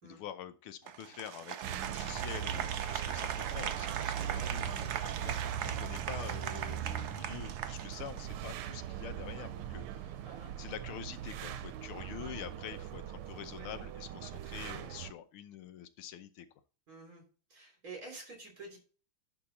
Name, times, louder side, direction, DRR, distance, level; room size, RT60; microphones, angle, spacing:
voice 1, 0.0-5.4 5.6-16.5, left 10 dB, 80° left, 10 dB, 1.6 m, -46 dB
Applause, 0.9-8.4, right 9 dB, 65° right, 1.0 m, -40 dB
sound 1, 1.6-15.1, right 10 dB, 90° right, 1.5 m, -40 dB
voice 2, 4.1-4.5 10.2-10.5 16.9-17.2 17.5-18.8, right 3 dB, 40° right, 0 dB, 3.7 m, -48 dB
11.0 x 3.9 x 4.1 m, 0.37 s
omnidirectional pair, 2.4 m